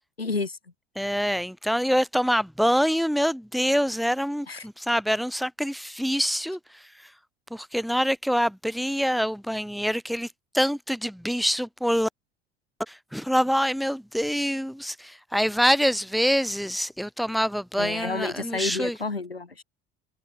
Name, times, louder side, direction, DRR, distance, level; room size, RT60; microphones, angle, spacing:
voice 1, 0.2-0.6 4.5-4.7 17.8-19.6, left 3 dB, 85° left, 1.8 m, -30 dB
voice 2, 1.0-7.1 7.5-12.1 12.9-19.0, equal, ahead, 5.4 m, -25 dB
figure-of-eight pair, 60°, 29 cm